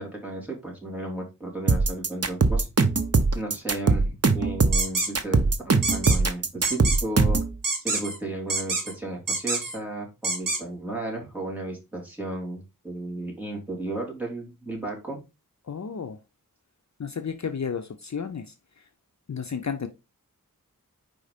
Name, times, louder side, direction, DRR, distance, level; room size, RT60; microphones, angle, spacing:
voice 1, 0.0-2.7 3.3-7.4 7.8-15.2, right 2 dB, 5° right, 3.0 m, -34 dB
sound 1, 1.7-7.5, right 3 dB, 45° right, 0.8 m, -21 dB
sound 2, 4.7-5.1 5.8-6.2 6.6-7.0 7.6-8.2 8.5-8.9 9.3-9.8 10.2-10.6, right 3 dB, 65° right, 1.6 m, -27 dB
voice 2, 15.6-16.2 17.0-18.8 19.3-19.9, left 6 dB, 55° left, 0.6 m, -32 dB
5.0 x 3.9 x 5.1 m
wide cardioid pair, 60°, 34 cm